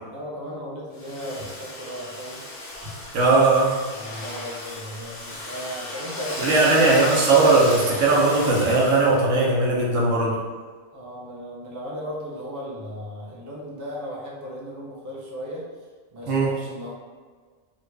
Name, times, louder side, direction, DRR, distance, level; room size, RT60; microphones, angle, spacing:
voice 1, 0.1-2.4 3.9-6.8 10.9-15.7 16.1-16.9, equal, 25° right, -5 dB, 0.4 m, -36 dB
Domestic sounds home sounds, 0.9-9.2, left 2 dB, 55° left, 0.5 m, -35 dB
voice 2, 3.1-3.8 6.4-10.4 16.3-16.5, right 3 dB, 85° right, -4 dB, 1.1 m, -18 dB
3.1 x 2.4 x 3.2 m, 1.5 s
omnidirectional pair, 1.3 m